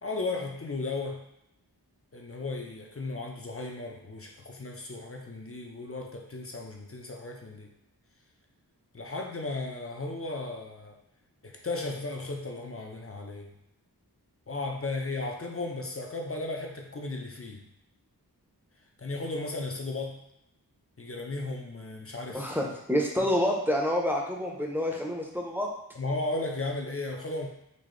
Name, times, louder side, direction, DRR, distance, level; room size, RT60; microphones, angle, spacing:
voice 1, 0.0-1.2 2.1-7.7 8.9-10.9 11.4-13.5 14.5-17.7 19.0-20.2 21.0-22.8 23.2-23.3 25.9-27.5, left 2 dB, 35° left, 2 dB, 0.6 m, -35 dB
voice 2, 22.3-25.7, equal, 5° right, -1 dB, 0.7 m, -28 dB
4.1 x 2.7 x 3.1 m, 0.80 s
wide cardioid pair, 50°, 38 cm